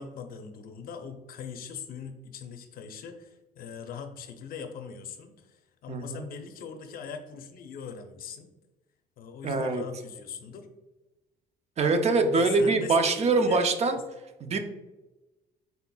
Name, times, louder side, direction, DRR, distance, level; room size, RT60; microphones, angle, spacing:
voice 1, 0.0-8.5 9.2-10.7 12.3-13.6, left 6 dB, 60° left, 6 dB, 0.6 m, -41 dB
voice 2, 5.9-6.3 9.4-9.8 11.8-14.0 14.4-14.6, right 3 dB, 40° right, 6 dB, 0.6 m, -24 dB
4.1 x 3.9 x 2.3 m, 1.1 s
cardioid pair, 110°, 17 cm